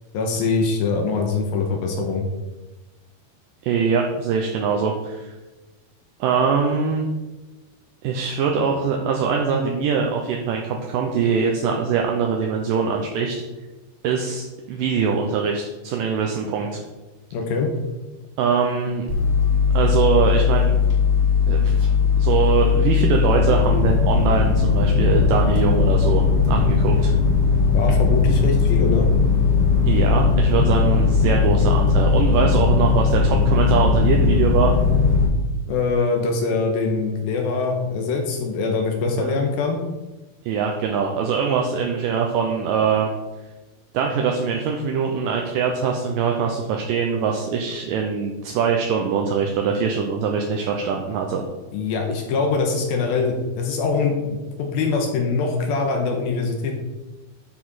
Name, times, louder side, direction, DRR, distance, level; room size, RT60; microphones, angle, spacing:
voice 1, 0.1-2.2 17.3-17.7 27.7-29.1 35.7-39.8 51.7-56.7, left 4 dB, 75° left, 2 dB, 2.6 m, -23 dB
voice 2, 3.6-5.3 6.2-7.1 8.0-13.4 14.0-16.8 18.4-19.1 19.7-20.7 21.5-21.9 22.2-27.1 29.9-34.7 39.2-39.3 40.5-43.1 43.9-51.4, right 6 dB, 75° right, 1 dB, 2.1 m, -22 dB
sound 1, 19.1-35.2, left 5 dB, 30° left, 1.2 m, -18 dB
11.5 x 4.9 x 4.1 m, 1.1 s
omnidirectional pair, 4.5 m